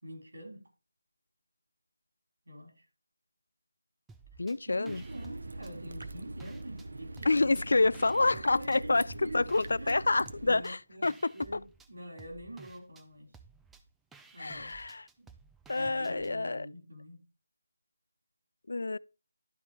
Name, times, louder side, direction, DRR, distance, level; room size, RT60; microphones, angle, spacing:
voice 1, 0.0-0.6 2.5-2.8 4.6-7.4 8.1-9.5 9.8-10.0 10.4-13.3 14.3-14.7 15.2-15.3 15.7-17.2, right 1 dB, 85° right, 4.2 m, -45 dB
sound 1, 4.1-4.6 4.9-6.9 7.2-8.8 9.1-16.3, right 4 dB, 5° right, 0.4 m, -56 dB
voice 2, 4.4-5.0 7.2-11.6 14.4-15.0 15.7-16.7 18.7-19.0, left 3 dB, 70° left, 0.3 m, -28 dB
sound 2, 4.9-10.6, right 2 dB, 65° right, 0.9 m, -43 dB
11.5 x 4.2 x 4.5 m
figure-of-eight pair, 170°, 0 cm